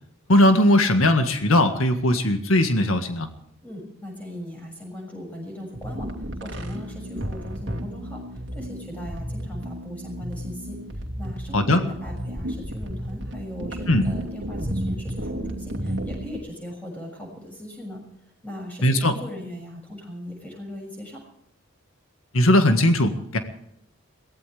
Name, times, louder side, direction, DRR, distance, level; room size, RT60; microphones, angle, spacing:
voice 1, 0.3-3.3 11.5-11.8 13.9-14.0 18.8-19.1 22.3-23.4, left 1 dB, 80° left, 7 dB, 1.8 m, -19 dB
voice 2, 3.6-21.2, left 1 dB, 5° left, 0 dB, 6.7 m, -39 dB
sound 1, 5.7-16.4, right 1 dB, 55° right, 2.5 m, -32 dB
23.0 x 17.5 x 3.5 m, 0.74 s
head